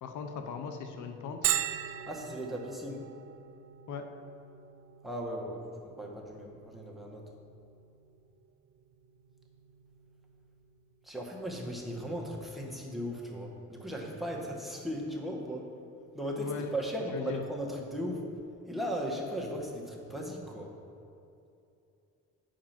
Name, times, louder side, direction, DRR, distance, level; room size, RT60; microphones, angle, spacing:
voice 1, 0.0-1.5 3.9-4.1 16.4-16.7 17.1-17.4, left 6 dB, 75° left, 5 dB, 0.8 m, -38 dB
Bell, 1.4-16.9, right 11 dB, 50° right, 0.5 m, -42 dB
voice 2, 2.1-3.0 5.0-7.2 11.0-15.7 16.1-18.2 18.7-20.7, equal, ahead, -1 dB, 1.5 m, -37 dB
8.8 x 4.9 x 5.9 m, 2.7 s
cardioid pair, 90°, 30 cm